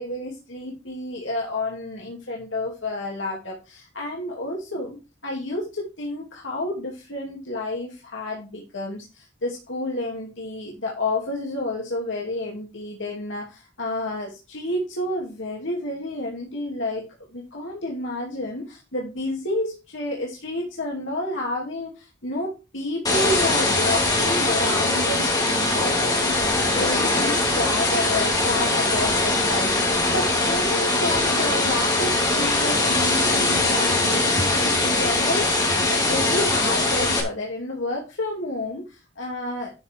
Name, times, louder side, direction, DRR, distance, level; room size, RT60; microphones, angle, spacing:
voice 1, 0.0-39.7, left 2 dB, 70° left, -2 dB, 2.7 m, -30 dB
sound 1, 23.1-37.2, left 2 dB, 20° left, 2.8 m, -21 dB
12.0 x 5.7 x 4.6 m, 0.29 s
head